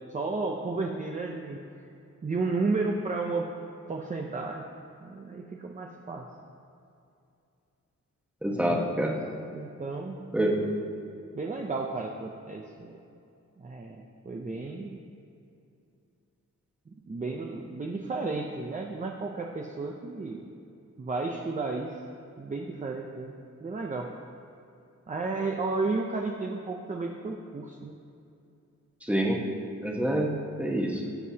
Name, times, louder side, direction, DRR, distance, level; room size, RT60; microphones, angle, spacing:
voice 1, 0.1-1.6 2.2-3.5 3.9-4.6 5.0-6.3 8.5-9.0 9.5-10.2 11.3-13.0 13.6-15.0 16.9-20.4 21.0-21.9 22.4-23.4 23.6-24.1 25.1-28.0, right 3 dB, 25° right, 0 dB, 0.6 m, -33 dB
voice 2, 8.4-9.1 10.3-10.6 29.0-29.4 29.8-30.3 30.6-31.0, right 1 dB, 5° right, -1 dB, 1.1 m, -26 dB
18.5 x 7.5 x 2.8 m, 2.6 s
wide cardioid pair, 170°, 30 cm